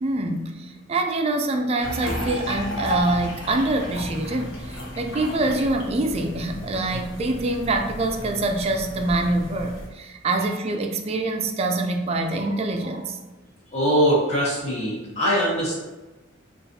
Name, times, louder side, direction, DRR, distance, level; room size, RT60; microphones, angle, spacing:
voice 1, 0.0-13.2, right 2 dB, 30° right, 5 dB, 0.3 m, -25 dB
sound 1, 1.8-9.9, left 1 dB, 70° left, 0.8 m, -33 dB
voice 2, 13.7-15.8, equal, 35° left, -7 dB, 1.2 m, -22 dB
3.9 x 2.5 x 2.6 m, 1.1 s
head